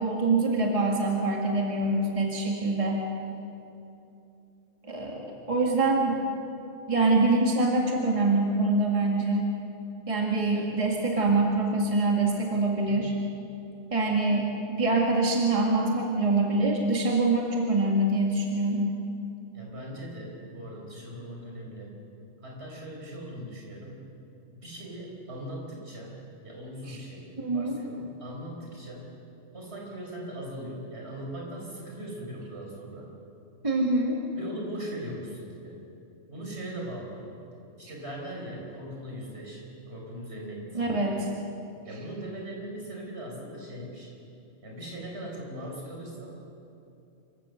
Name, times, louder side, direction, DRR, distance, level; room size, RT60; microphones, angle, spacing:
voice 1, 0.0-3.1 4.8-6.3 6.9-9.5 10.1-13.1 13.9-18.9 26.9-27.0 27.4-27.8 33.6-34.2 40.7-41.3, right 2 dB, 25° right, -1 dB, 2.1 m, -25 dB
voice 2, 19.5-22.0 22.4-24.1 24.5-26.2 26.4-29.1 29.5-33.1 34.3-35.8 36.3-37.4 37.8-40.8 41.8-44.2 44.6-46.4, right 1 dB, 55° right, -1 dB, 4.8 m, -40 dB
27.0 x 16.0 x 6.5 m, 2.8 s
omnidirectional pair, 1.3 m